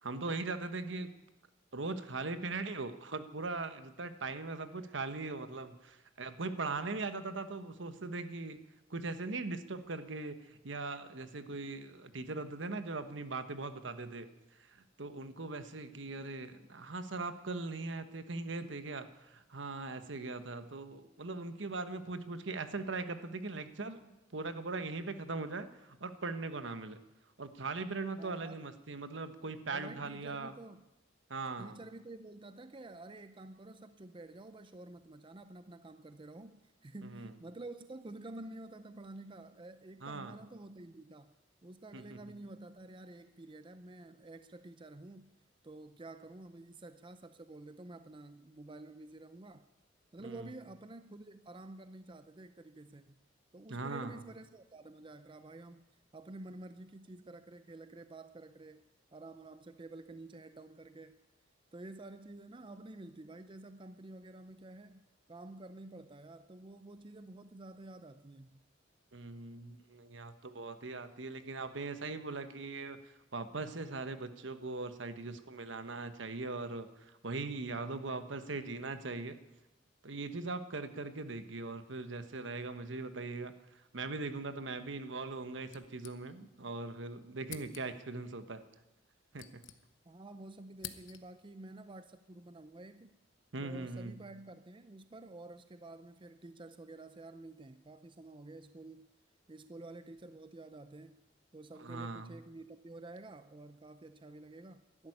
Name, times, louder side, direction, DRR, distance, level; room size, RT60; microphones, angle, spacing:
voice 1, 0.0-1.1 1.7-8.6 8.9-14.3 14.6-27.0 27.4-30.5 31.3-31.8 37.0-37.3 40.0-40.4 41.9-42.2 50.2-50.5 53.7-54.2 69.1-79.4 80.0-83.5 83.9-88.6 89.3-89.6 93.5-94.1 101.8-102.4, right 3 dB, 70° right, 10 dB, 1.2 m, -40 dB
voice 2, 28.2-28.6 29.7-30.8 31.6-41.4 41.6-45.3 45.6-49.7 50.1-53.2 53.5-55.8 56.1-58.8 59.1-61.2 61.7-68.6 90.1-93.1 93.6-99.1 99.5-101.2 101.5-105.1, right 2 dB, 25° right, 10 dB, 0.5 m, -50 dB
sound 1, 85.7-86.7 86.9-87.0 87.4-88.1 89.0-90.2 90.5-91.5, left 10 dB, 70° left, 1.0 m, -50 dB
12.5 x 11.0 x 10.0 m, 0.98 s
head